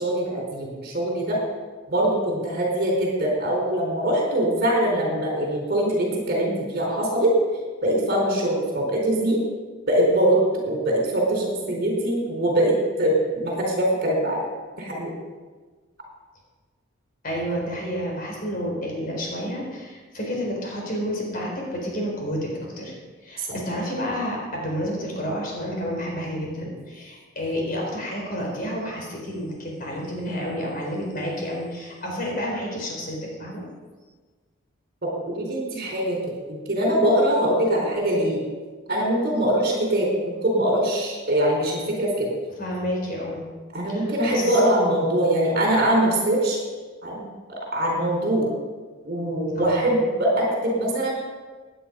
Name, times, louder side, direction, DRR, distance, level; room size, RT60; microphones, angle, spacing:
voice 1, 0.0-1.4 1.9-7.3 7.8-9.4 9.9-14.5 14.8-15.1 23.4-23.5 35.0-36.2 36.5-38.4 38.9-42.3 43.7-46.6 47.0-47.2 47.7-48.5 49.0-51.1, right 1 dB, 50° right, -1 dB, 4.4 m, -22 dB
voice 2, 17.2-22.5 22.8-22.9 23.2-33.6 42.6-43.5 43.9-44.6 49.6-49.8, equal, 45° left, -1 dB, 4.4 m, -30 dB
17.5 x 10.0 x 5.4 m, 1.4 s
head